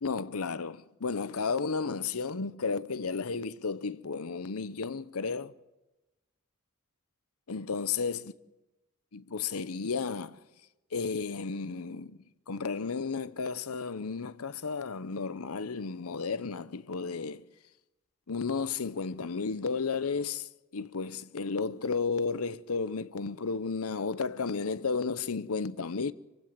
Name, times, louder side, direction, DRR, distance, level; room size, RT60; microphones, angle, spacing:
voice 1, 0.0-5.5 7.5-8.3 9.1-10.4 10.9-12.2 12.5-17.5 18.3-26.1, left 4 dB, 85° left, 0.8 m, -33 dB
26.5 x 16.0 x 7.5 m
head